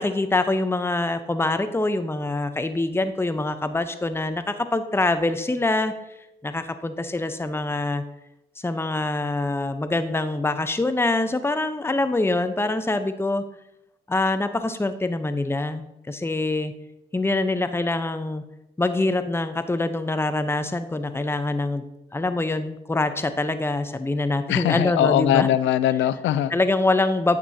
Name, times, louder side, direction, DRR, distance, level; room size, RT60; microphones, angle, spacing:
voice 1, 0.0-5.9 6.4-8.0 8.6-13.4 14.1-16.7 17.1-18.4 18.8-21.8 22.1-25.5 26.5-27.4, left 2 dB, 10° left, 10 dB, 0.8 m, -24 dB
voice 2, 24.5-26.5, left 11 dB, 70° left, 15 dB, 0.5 m, -21 dB
10.0 x 8.4 x 2.8 m, 0.85 s
hypercardioid pair, 45°, 20 cm